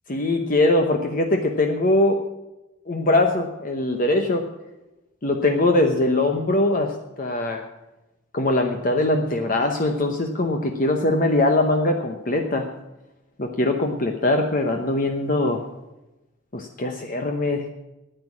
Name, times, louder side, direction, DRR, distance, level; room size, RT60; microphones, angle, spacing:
voice 1, 0.1-2.2 2.9-4.4 5.2-7.6 8.3-12.7 13.4-15.6 16.5-17.6, left 2 dB, 40° left, 4 dB, 1.0 m, -22 dB
10.0 x 9.1 x 8.5 m, 0.99 s
head